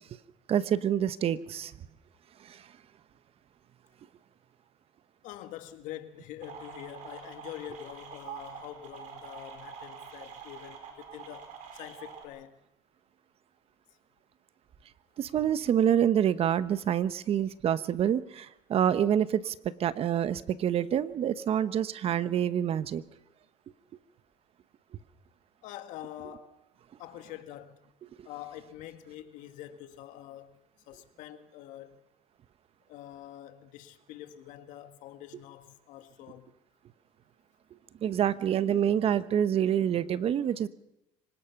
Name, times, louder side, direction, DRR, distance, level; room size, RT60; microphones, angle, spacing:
voice 1, 0.5-1.7 2.4-2.6 15.2-19.5 19.8-23.0 38.0-40.7, right 9 dB, 45° right, 1.0 m, -27 dB
voice 2, 5.2-12.6 15.4-15.5 25.6-26.6 27.0-27.8 28.2-30.6 30.9-32.0 32.9-36.5, left 12 dB, 70° left, 1.9 m, -45 dB
sound 1, 6.4-12.3, right 7 dB, 65° right, 4.7 m, -46 dB
25.0 x 18.5 x 5.9 m
supercardioid pair, 95°, 13 cm